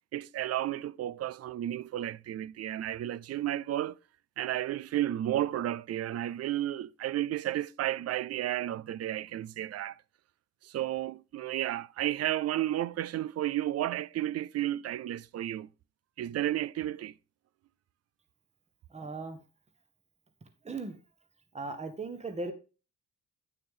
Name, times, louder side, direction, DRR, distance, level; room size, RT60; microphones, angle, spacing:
voice 1, 0.1-4.0 4.4-10.0 10.6-15.7 16.2-17.1, right 13 dB, 55° right, 0.4 m, -32 dB
voice 2, 18.9-19.4 20.6-21.0 21.5-22.5, right 3 dB, 20° right, 1.3 m, -37 dB
9.1 x 6.5 x 3.7 m
cardioid pair, 90°, 30 cm